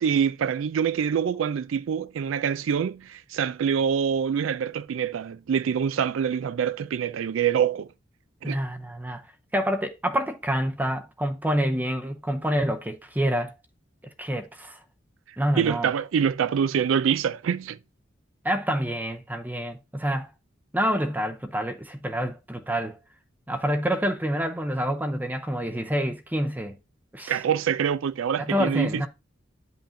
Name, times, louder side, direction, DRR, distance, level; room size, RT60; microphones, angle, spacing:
voice 1, 0.0-7.9 8.4-8.6 15.6-17.8 27.3-29.1, right 7 dB, 85° right, 0.4 m, -25 dB
voice 2, 8.4-9.2 9.5-13.5 14.2-14.8 15.4-15.9 18.4-20.3 20.7-23.0 23.5-26.7 27.1-27.4 28.4-29.1, equal, 10° right, 0.6 m, -27 dB
10.0 x 5.6 x 2.6 m
head